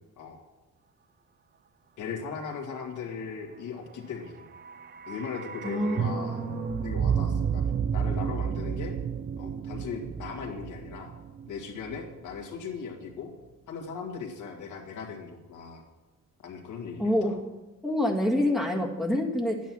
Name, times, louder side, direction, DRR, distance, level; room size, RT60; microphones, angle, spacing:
voice 1, 2.0-4.5 5.1-6.4 6.8-9.0 9.4-11.1 11.5-13.3 13.7-15.8 16.4-17.1, left 5 dB, 75° left, 0 dB, 2.0 m, -38 dB
sound 1, 4.3-12.4 12.7-12.8, right 7 dB, 35° right, 0.5 m, -31 dB
voice 2, 5.6-7.1 17.0-17.4 17.8-19.6, left 1 dB, ahead, 0 dB, 1.8 m, -27 dB
10.0 x 9.3 x 6.1 m, 1.1 s
cardioid pair, 90°, 30 cm